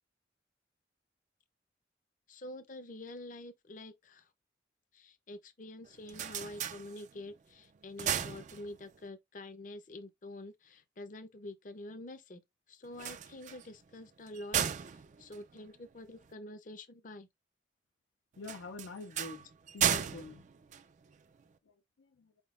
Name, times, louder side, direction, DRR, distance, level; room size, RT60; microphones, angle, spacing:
voice 1, 2.3-4.3 4.9-12.4 12.7-17.3, left 1 dB, 45° left, 0.6 m, -47 dB
sound 1, 5.8-7.4 7.8-9.1 12.9-16.3 18.4-21.5, right 9 dB, 40° right, 0.3 m, -36 dB
voice 2, 18.4-19.5 19.7-20.4 21.7-22.3, left 3 dB, 90° left, 0.5 m, -46 dB
4.7 x 3.6 x 2.4 m
head